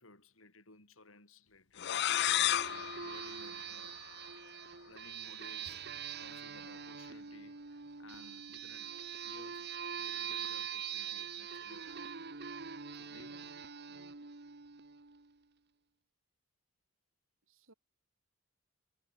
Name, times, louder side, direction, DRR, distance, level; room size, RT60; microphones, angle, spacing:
voice 1, 0.0-2.2 2.7-4.1 4.8-12.0 12.9-13.5, left 2 dB, 75° left, 7.9 m, -59 dB
sound 1, 1.8-4.4, left 12 dB, 55° left, 0.5 m, -33 dB
sound 2, 2.1-15.3, right 7 dB, 55° right, 1.5 m, -44 dB
sound 3, 5.7-9.1, left 1 dB, 40° left, 5.1 m, -66 dB
voice 2, 13.1-13.6 13.9-14.2 17.5-17.7, right 2 dB, 75° right, 5.8 m, -62 dB
head